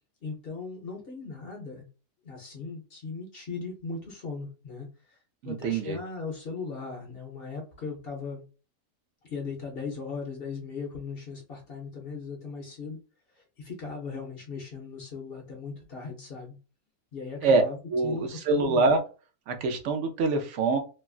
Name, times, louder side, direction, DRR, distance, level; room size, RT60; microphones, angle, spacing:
voice 1, 0.2-1.9 2.2-5.2 5.4-8.4 9.2-13.0 13.3-16.6 17.1-18.8, left 4 dB, 50° left, 1 dB, 0.7 m, -38 dB
voice 2, 5.4-6.0 17.4-17.6 17.9-19.0 19.5-20.8, right 3 dB, 65° right, 6 dB, 0.8 m, -24 dB
3.0 x 2.3 x 2.3 m, 0.35 s
omnidirectional pair, 1.6 m